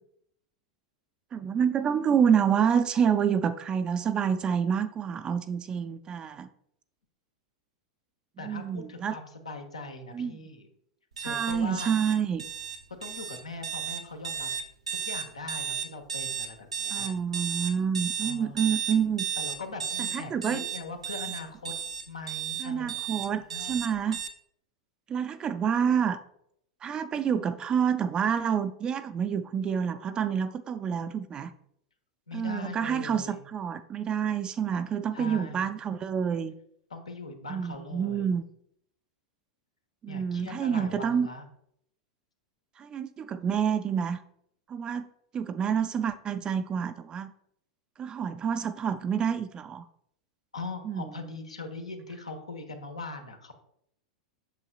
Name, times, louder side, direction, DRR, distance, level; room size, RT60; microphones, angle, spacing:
voice 1, 1.3-6.5 8.4-9.2 10.1-10.3 11.2-12.4 16.9-19.2 20.0-20.6 22.6-24.2 25.1-26.2 26.8-31.5 32.3-36.5 37.5-38.4 40.0-41.3 42.8-44.2 44.7-45.1 45.3-47.3 48.0-49.9 50.8-51.1, right 7 dB, 25° right, 11 dB, 0.4 m, -28 dB
voice 2, 8.4-10.7 11.2-12.0 13.0-14.5 14.9-17.1 18.2-18.7 19.4-21.7 22.1-23.0 23.3-23.8 32.3-33.5 35.1-35.7 36.9-38.3 40.1-41.5 50.5-53.5, left 3 dB, 80° left, 5 dB, 1.2 m, -41 dB
sound 1, 11.2-24.3, right 7 dB, 75° right, 0.7 m, -34 dB
8.2 x 6.8 x 2.4 m, 0.73 s
figure-of-eight pair, 90°, 3 cm